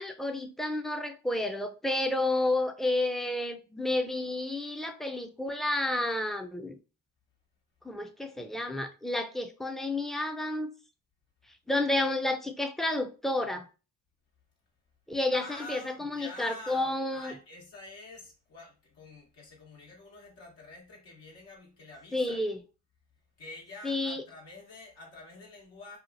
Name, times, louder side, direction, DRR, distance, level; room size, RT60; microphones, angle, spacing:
voice 1, 0.0-6.8 7.8-10.7 11.7-13.6 15.1-17.3 22.1-22.6 23.8-24.2, left 2 dB, ahead, 0.4 m, -30 dB
voice 2, 15.3-22.4 23.4-26.0, left 2 dB, 75° left, 1.2 m, -47 dB
2.8 x 2.4 x 2.6 m
hypercardioid pair, 40°, 43 cm